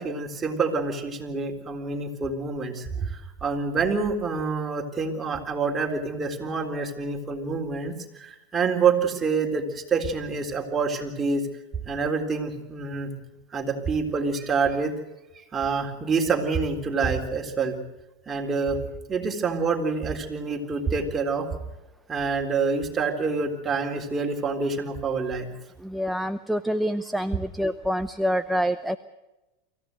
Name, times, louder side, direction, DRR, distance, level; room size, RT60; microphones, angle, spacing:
voice 1, 0.0-11.4 11.9-13.1 13.5-14.9 15.5-17.8 18.3-18.8 19.1-21.5 22.1-25.5, right 4 dB, 20° right, 2 dB, 3.9 m, -27 dB
voice 2, 25.8-29.0, equal, ahead, 9 dB, 0.7 m, -26 dB
24.5 x 15.5 x 7.9 m, 1.0 s
hypercardioid pair, 95°, 0 cm